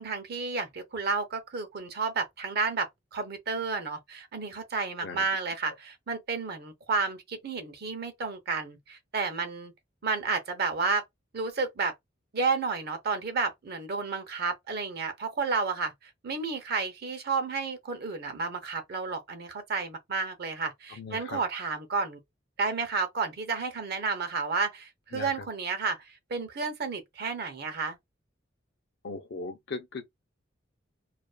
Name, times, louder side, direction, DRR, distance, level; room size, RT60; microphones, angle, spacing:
voice 1, 0.0-9.7 10.0-11.0 11.3-11.9 12.3-22.2 22.6-28.0, right 4 dB, 55° right, 0.6 m, -31 dB
voice 2, 20.9-21.4 25.1-25.5 29.0-30.1, left 3 dB, 60° left, 0.5 m, -38 dB
2.4 x 2.2 x 2.3 m
head